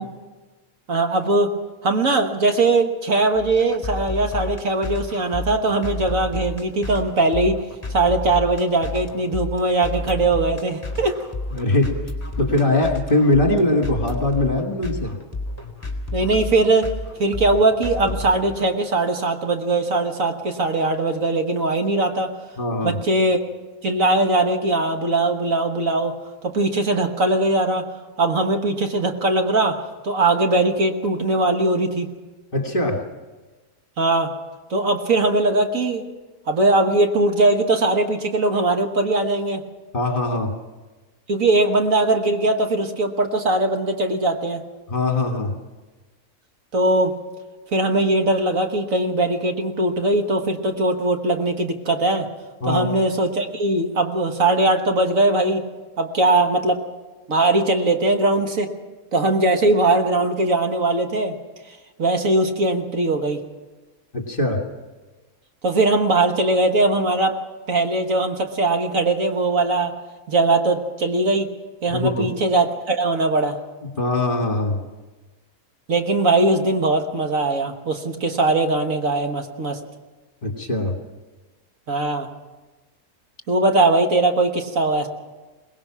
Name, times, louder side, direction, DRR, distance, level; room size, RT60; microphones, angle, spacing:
voice 1, 0.9-1.5 1.8-7.6 7.9-11.2 16.1-16.9 17.2-22.3 22.8-23.4 23.8-26.2 26.4-27.9 28.2-32.1 34.0-34.3 34.7-36.0 36.5-39.6 41.3-44.6 46.7-47.1 47.7-52.3 52.7-55.6 56.0-56.8 57.3-58.7 59.1-61.3 62.0-63.4 65.6-67.4 67.7-69.9 70.3-71.5 71.8-73.6 75.9-79.8 81.9-82.3 83.5-85.1, right 2 dB, 60° right, 5 dB, 1.8 m, -20 dB
sound 1, 3.3-18.7, left 2 dB, 10° left, 2.5 m, -31 dB
voice 2, 11.5-11.9 12.4-15.2 22.6-23.0 32.5-33.0 39.9-40.5 44.9-45.5 52.6-52.9 64.1-64.6 71.9-72.3 73.8-74.8 80.4-81.0, left 2 dB, 35° left, 4 dB, 2.2 m, -21 dB
22.5 x 19.5 x 6.1 m, 1.2 s
omnidirectional pair, 1.6 m